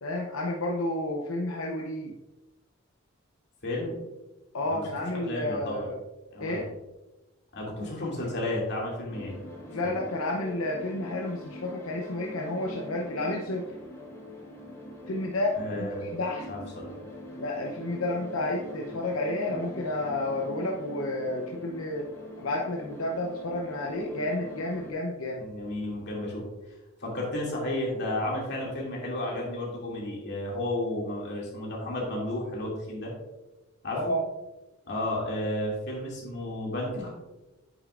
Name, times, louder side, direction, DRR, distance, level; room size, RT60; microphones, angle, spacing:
voice 1, 0.0-2.1 4.5-6.0 6.4-6.7 9.7-13.6 15.1-16.5 17.4-22.1 22.4-25.4 33.9-34.2, left 1 dB, 85° left, 0 dB, 0.8 m, -31 dB
voice 2, 3.6-3.9 4.7-4.8 5.2-5.9 6.3-6.7 7.5-9.4 15.5-16.1 16.5-16.9 25.4-26.5 27.0-33.1 33.8-34.1 34.9-37.1, left 1 dB, 55° left, -3 dB, 2.5 m, -32 dB
sound 1, 9.1-24.9, left 1 dB, 15° left, 1.4 m, -43 dB
8.9 x 6.6 x 2.5 m, 1.0 s
head